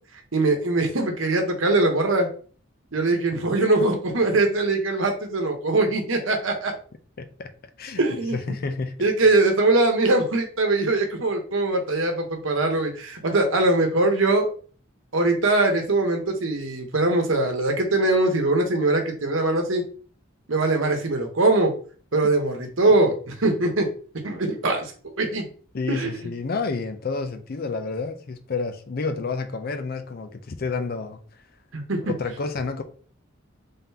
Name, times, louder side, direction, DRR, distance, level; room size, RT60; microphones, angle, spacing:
voice 1, 0.3-2.3 2.9-6.7 8.0-8.4 9.0-14.5 15.1-19.8 20.5-21.7 22.1-23.9 24.2-25.5 25.9-26.1 31.7-32.1, right 2 dB, 75° right, 1.0 m, -22 dB
voice 2, 7.2-7.5 7.8-8.0 8.3-9.1 25.7-31.2 32.1-32.8, left 4 dB, 45° left, 0.5 m, -29 dB
3.8 x 3.5 x 2.7 m
head